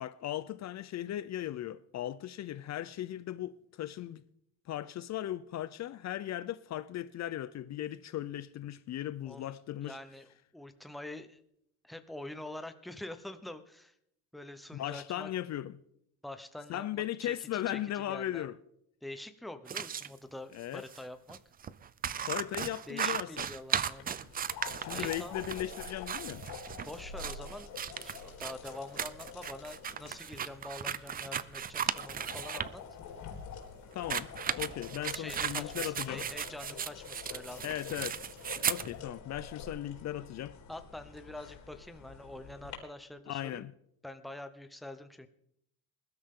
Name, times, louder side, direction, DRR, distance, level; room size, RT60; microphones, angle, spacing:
voice 1, 0.0-4.2 4.7-10.0 14.7-15.7 16.7-18.6 20.5-20.8 22.3-23.5 24.8-26.5 33.9-36.2 37.6-38.3 38.6-40.6 43.3-43.7, left 12 dB, 45° left, 0.5 m, -37 dB
voice 2, 9.8-11.4 11.8-13.9 14.3-15.3 16.2-18.5 19.0-21.4 22.9-24.1 24.9-25.4 26.8-27.7 28.0-32.8 35.1-37.7 40.7-43.7 44.0-45.3, left 1 dB, ahead, 0.8 m, -46 dB
sound 1, 19.7-20.1 20.9-21.0 21.3-21.4 21.6-32.7 33.9-38.9, right 8 dB, 25° right, 0.4 m, -36 dB
sound 2, 23.8-42.7, left 6 dB, 85° left, 4.1 m, -47 dB
20.5 x 12.5 x 3.7 m
cardioid pair, 140°, 37 cm